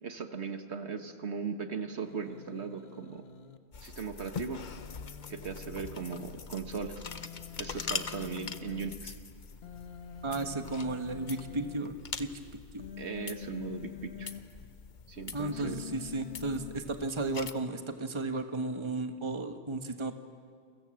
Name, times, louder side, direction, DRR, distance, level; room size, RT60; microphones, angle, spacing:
voice 1, 0.0-3.2 3.8-4.6 5.3-7.0 7.6-9.1 13.0-14.3 15.1-15.8, right 5 dB, 70° right, 7 dB, 1.7 m, -38 dB
Human voice, 2.0-3.6 4.4-6.4 7.0-8.9 9.6-11.8 12.8-14.4 15.5-16.7, left 9 dB, 65° left, 1.5 m, -47 dB
sound 1, 3.7-17.5, left 5 dB, 45° left, 1.0 m, -43 dB
voice 2, 10.2-12.3 12.7-12.9 15.3-20.2, right 2 dB, 25° right, 7 dB, 1.3 m, -34 dB
29.5 x 24.0 x 7.7 m, 2.1 s
omnidirectional pair, 1.1 m